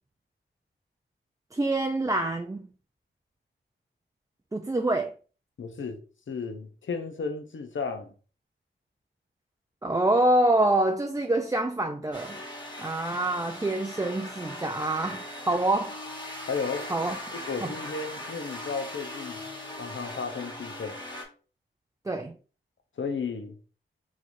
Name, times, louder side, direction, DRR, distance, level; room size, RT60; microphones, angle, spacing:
voice 1, 1.5-2.6 4.5-5.1 9.8-12.4 12.8-16.0 16.9-17.2 17.6-17.7 22.1-22.4, right 1 dB, 15° right, 0.4 m, -26 dB
voice 2, 5.6-6.0 6.3-8.1 16.5-16.9 17.3-19.4 19.8-21.0 23.0-23.6, left 5 dB, 65° left, 0.7 m, -34 dB
sound 1, 12.1-21.2, left 1 dB, 20° left, 1.3 m, -39 dB
3.7 x 3.2 x 2.6 m
cardioid pair, 40°, 21 cm